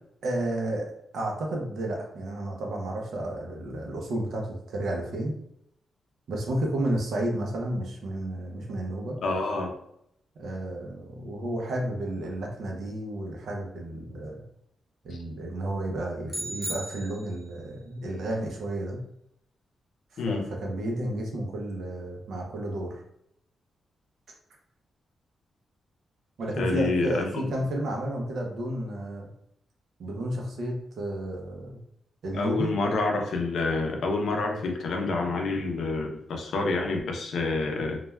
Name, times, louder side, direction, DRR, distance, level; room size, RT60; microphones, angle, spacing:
voice 1, 0.2-0.9 1.1-5.3 6.3-9.2 10.4-14.4 15.0-19.0 20.1-23.0 26.4-29.3 30.0-31.8 32.2-32.8, right 1 dB, 65° right, 1 dB, 0.6 m, -32 dB
voice 2, 9.2-9.7 20.2-20.4 26.6-27.5 32.3-38.0, left 3 dB, 65° left, 2 dB, 0.5 m, -28 dB
sound 1, 16.3-17.6, right 1 dB, 5° right, 0.5 m, -36 dB
3.2 x 2.2 x 2.2 m, 0.75 s
wide cardioid pair, 175°, 0 cm